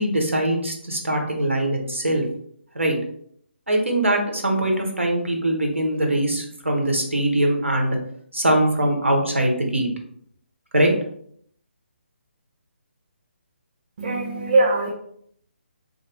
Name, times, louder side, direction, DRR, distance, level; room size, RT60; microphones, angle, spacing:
voice 1, 0.0-2.2 2.7-3.0 3.7-8.0 8.3-9.9 10.7-10.9, right 1 dB, 85° right, 1 dB, 0.7 m, -22 dB
voice 2, 14.0-14.9, right 2 dB, 40° right, 0 dB, 0.4 m, -21 dB
2.5 x 2.0 x 2.8 m, 0.66 s
figure-of-eight pair, 145°, 7 cm